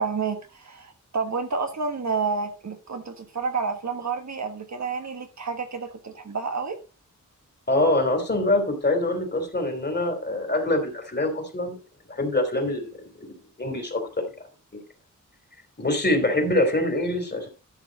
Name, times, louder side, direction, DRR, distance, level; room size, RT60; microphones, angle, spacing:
voice 1, 0.0-6.8, right 5 dB, 60° right, 1.5 m, -29 dB
voice 2, 7.7-11.8 12.1-12.9 13.2-13.3 13.6-14.0 15.8-17.5, left 1 dB, 30° left, 3.1 m, -24 dB
12.5 x 6.3 x 4.1 m
wide cardioid pair, 110°, 32 cm